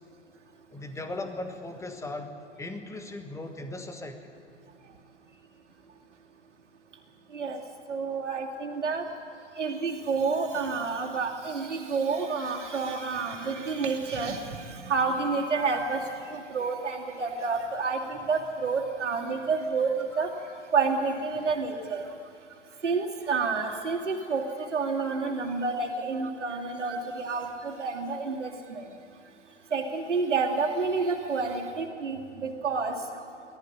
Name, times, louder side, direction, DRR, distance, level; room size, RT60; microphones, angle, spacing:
voice 1, 0.7-4.3, left 2 dB, 10° left, 6 dB, 1.5 m, -38 dB
voice 2, 7.3-7.6 7.9-9.1 9.6-20.3 20.7-22.2 22.8-28.9 29.7-33.2, right 4 dB, 80° right, -1 dB, 2.7 m, -29 dB
19.0 x 13.5 x 9.9 m, 2.5 s
figure-of-eight pair, 110°, 35 cm